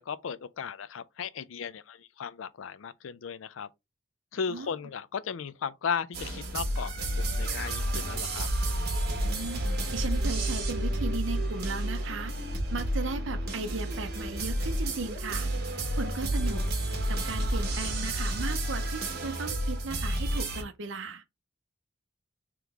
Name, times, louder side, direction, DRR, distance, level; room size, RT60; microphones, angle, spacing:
voice 1, 0.0-3.7 4.3-8.5, left 6 dB, 85° left, 0.4 m, -36 dB
sound 1, 6.1-20.6, right 1 dB, 55° right, 1.2 m, -30 dB
voice 2, 9.2-15.5 16.0-16.6 17.1-21.2, right 3 dB, 70° right, 0.6 m, -37 dB
3.5 x 3.0 x 3.6 m
head